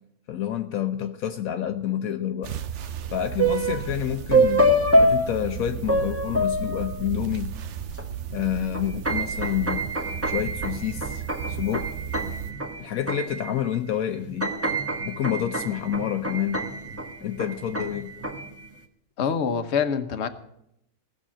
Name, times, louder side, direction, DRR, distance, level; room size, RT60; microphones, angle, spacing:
voice 1, 0.3-2.6 3.1-4.7 5.0-7.5 8.3-9.9 10.2-11.9 12.8-14.5 15.1-16.7 17.2-18.1, left 10 dB, 70° left, 1.1 m, -28 dB
sound 1, 2.4-12.5, right 9 dB, 60° right, 0.9 m, -35 dB
sound 2, 3.4-4.0 4.3-7.2 8.0-8.1 8.4-13.8 14.1-18.6, right 1 dB, 10° right, 1.0 m, -26 dB
voice 2, 19.2-20.3, left 6 dB, 50° left, 1.2 m, -25 dB
16.5 x 6.7 x 8.5 m
omnidirectional pair, 1.6 m